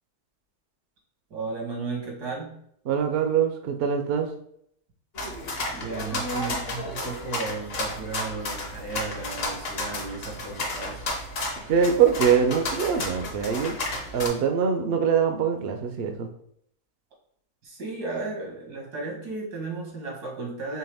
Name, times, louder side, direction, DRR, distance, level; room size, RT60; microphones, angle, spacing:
voice 1, 1.3-2.6 5.7-11.1 17.6-20.8, right 3 dB, 90° right, -2 dB, 2.0 m, -34 dB
voice 2, 2.8-4.3 11.6-13.8 14.1-16.3, right 7 dB, 65° right, 6 dB, 0.6 m, -23 dB
sound 1, 5.1-14.3, left 2 dB, 50° left, 0.9 m, -32 dB
4.6 x 3.2 x 3.4 m, 0.70 s
omnidirectional pair, 1.6 m